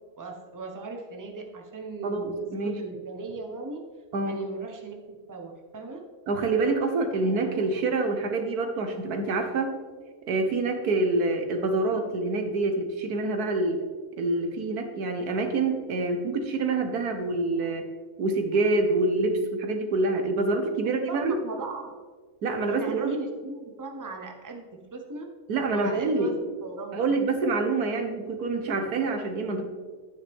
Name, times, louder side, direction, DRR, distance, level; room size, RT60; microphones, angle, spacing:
voice 1, 0.2-3.8 4.2-6.0 20.8-21.9 22.7-25.3 25.7-27.1, right 3 dB, 15° right, 2 dB, 0.9 m, -38 dB
voice 2, 2.0-2.8 4.1-4.5 6.3-9.8 10.3-13.8 14.2-17.8 18.2-21.4 22.4-23.2 25.5-26.3 26.9-29.6, right 3 dB, 80° right, 6 dB, 1.6 m, -26 dB
11.5 x 9.3 x 3.6 m, 1.5 s
omnidirectional pair, 1.6 m